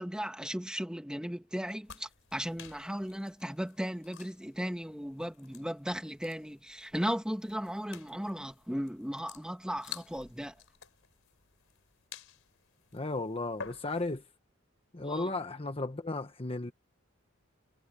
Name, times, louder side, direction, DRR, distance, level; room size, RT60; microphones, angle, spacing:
voice 1, 0.0-10.5 15.0-15.3, equal, 5° right, 2.3 m, -36 dB
sound 1, 1.8-14.3, left 7 dB, 75° left, 3.9 m, -52 dB
voice 2, 12.9-14.2 14.9-16.7, left 2 dB, 30° left, 1.1 m, -34 dB
head